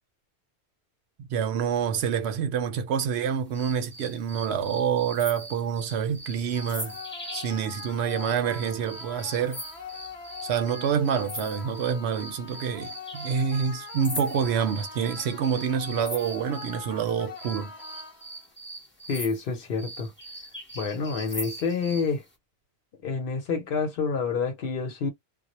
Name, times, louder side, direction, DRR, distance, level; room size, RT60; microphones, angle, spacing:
voice 1, 1.2-7.0 7.3-9.6 10.4-17.7, right 7 dB, 80° right, 0.8 m, -27 dB
sound 1, 3.5-16.8 17.3-22.1, equal, 15° left, 0.6 m, -41 dB
sound 2, 6.5-18.5, left 6 dB, 90° left, 1.0 m, -42 dB
voice 2, 19.1-20.1 20.7-22.2 23.0-25.1, left 5 dB, 60° left, 0.9 m, -28 dB
2.2 x 2.0 x 2.9 m
omnidirectional pair, 1.1 m